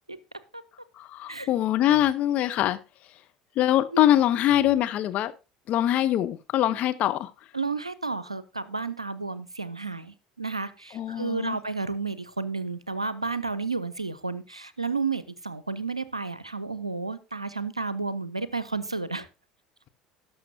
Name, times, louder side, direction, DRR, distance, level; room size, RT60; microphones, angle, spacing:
voice 1, 1.0-2.8 3.6-5.3 5.7-7.3 10.9-11.6, left 12 dB, 45° left, 0.8 m, -23 dB
voice 2, 7.5-19.3, right 4 dB, 90° right, 0.5 m, -32 dB
17.5 x 6.4 x 2.7 m
figure-of-eight pair, 65°, 3 cm